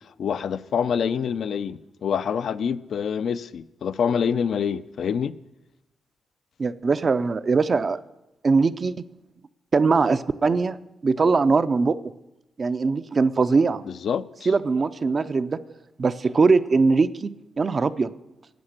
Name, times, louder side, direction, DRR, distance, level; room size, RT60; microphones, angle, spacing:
voice 1, 0.2-5.3 13.9-14.5, left 7 dB, 70° left, 0.4 m, -26 dB
voice 2, 6.6-8.0 8.4-8.9 9.7-10.8 11.0-12.0 12.6-13.8 14.5-15.6 16.0-18.1, right 4 dB, 40° right, 0.5 m, -21 dB
13.0 x 8.6 x 6.6 m
cardioid pair, 90°, 0 cm